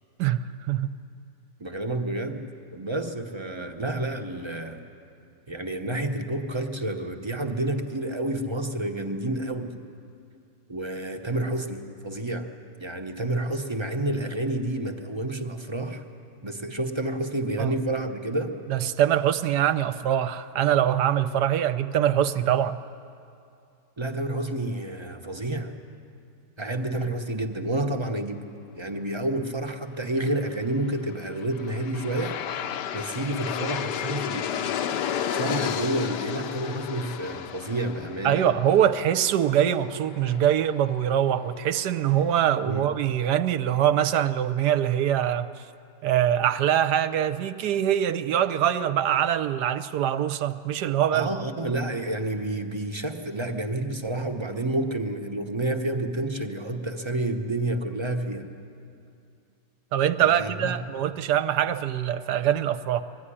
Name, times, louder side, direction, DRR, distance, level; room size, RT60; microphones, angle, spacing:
voice 1, 0.2-1.0 17.6-17.7 18.7-22.8 38.2-45.5 46.0-51.3 59.9-63.0, right 10 dB, 70° right, 1.2 m, -23 dB
voice 2, 1.6-2.4 2.7-4.8 5.5-9.8 10.7-12.5 12.8-16.0 16.4-18.6 24.0-25.7 26.6-28.4 28.7-32.4 32.6-34.7 35.3-38.5 42.6-42.9 51.1-58.5 60.2-60.7, right 1 dB, 30° right, 0.5 m, -29 dB
Aircraft, 31.1-42.2, left 9 dB, 75° left, 1.3 m, -33 dB
21.5 x 14.5 x 9.9 m
omnidirectional pair, 1.9 m